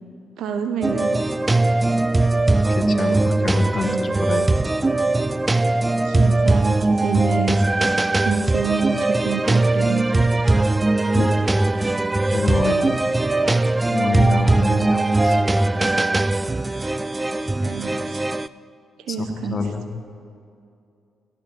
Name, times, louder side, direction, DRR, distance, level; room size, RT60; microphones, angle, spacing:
voice 1, 0.4-1.1 6.0-7.7 8.2-10.3 17.6-18.2 19.1-19.6, right 6 dB, 70° right, 7 dB, 0.8 m, -27 dB
sound 1, 0.8-18.5, right 2 dB, 20° right, 0.3 m, -20 dB
voice 2, 2.7-4.5 11.1-11.3 11.7-11.8 12.3-12.9 13.9-15.4 19.1-20.0, left 4 dB, 45° left, 6 dB, 1.2 m, -27 dB
18.5 x 13.5 x 3.1 m, 2.5 s
hypercardioid pair, 45°, 0 cm